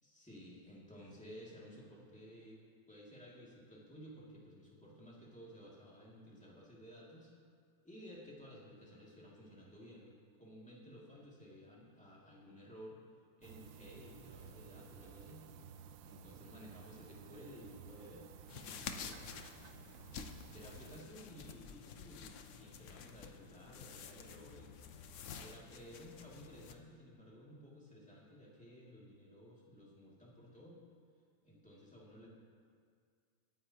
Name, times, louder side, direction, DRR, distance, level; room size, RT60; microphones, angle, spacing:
voice 1, 0.0-2.6 2.9-7.3 7.8-10.1 10.4-13.0 13.4-15.4 16.0-19.5 20.0-20.2 20.5-24.7 25.4-30.8 31.4-32.3, equal, 5° left, -5 dB, 2.1 m, -55 dB
sound 1, 13.4-21.0, right 7 dB, 80° right, 1.3 m, -55 dB
sound 2, 18.5-26.7, left 6 dB, 70° left, 0.7 m, -50 dB
24.5 x 9.5 x 2.9 m, 2.1 s
omnidirectional pair, 2.1 m